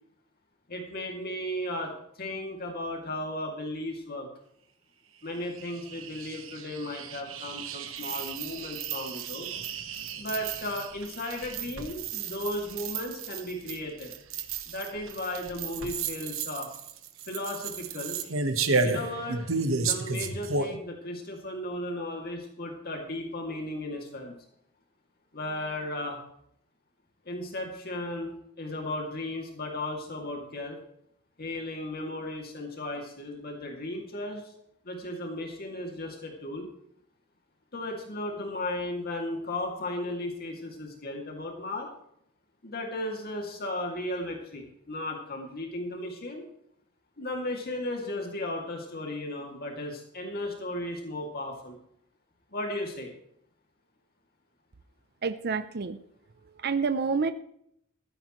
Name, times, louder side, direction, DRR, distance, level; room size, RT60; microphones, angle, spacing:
voice 1, 0.7-4.3 5.2-9.5 10.2-14.1 14.7-16.7 17.3-18.2 18.8-19.4 19.8-24.4 25.3-26.2 27.2-30.8 31.4-34.5 34.8-36.7 37.7-41.9 42.6-46.4 47.2-51.8 52.5-53.1, left 1 dB, 50° left, 1 dB, 2.6 m, -35 dB
sound 1, 5.3-20.8, right 4 dB, 80° right, 1.4 m, -33 dB
voice 2, 55.2-56.0 56.6-57.3, right 5 dB, 50° right, 11 dB, 0.6 m, -28 dB
15.0 x 14.0 x 3.2 m, 0.72 s
head